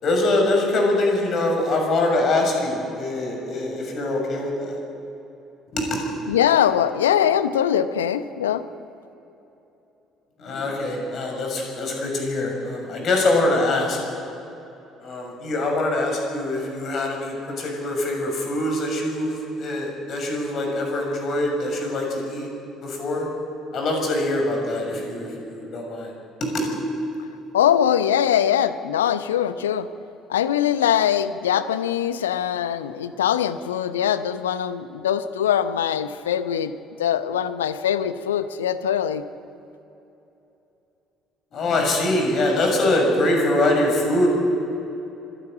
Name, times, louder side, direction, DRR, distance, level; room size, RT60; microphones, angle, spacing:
voice 1, 0.0-4.7 5.7-6.0 10.4-14.0 15.0-22.5 22.8-23.3 23.7-26.1 26.4-26.7 41.5-44.3, left 2 dB, 50° left, 1 dB, 6.7 m, -23 dB
voice 2, 6.3-8.7 27.5-29.9 30.3-36.7 37.0-39.2, left 9 dB, 80° left, 13 dB, 0.8 m, -22 dB
25.0 x 11.5 x 8.9 m, 2.9 s
figure-of-eight pair, 50°, 0 cm